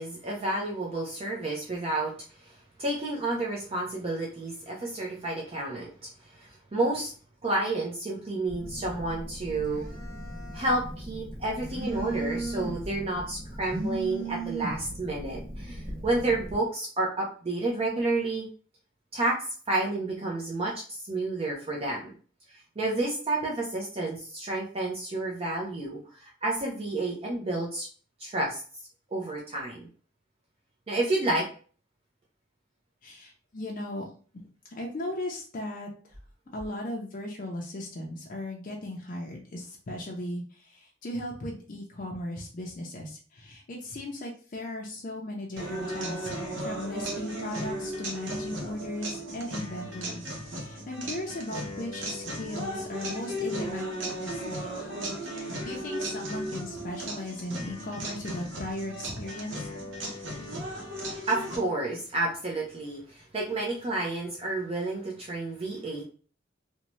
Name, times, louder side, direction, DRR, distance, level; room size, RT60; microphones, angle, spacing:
voice 1, 0.0-2.1 2.4-7.1 7.4-9.8 10.5-18.5 19.1-19.4 19.7-22.1 22.8-27.9 28.2-28.6 29.1-29.9 30.9-31.5 61.3-66.0, right 2 dB, 30° right, -3 dB, 0.5 m, -30 dB
Telephone, 8.5-16.5, right 2 dB, 50° right, 1.1 m, -37 dB
voice 2, 33.0-34.1 34.6-36.2 36.5-46.3 46.6-54.9 55.3-59.7 60.0-60.3, left 1 dB, 45° left, -1 dB, 0.5 m, -37 dB
sound 1, 45.6-61.6, right 1 dB, 70° right, 0.8 m, -36 dB
2.6 x 2.1 x 2.9 m, 0.41 s
head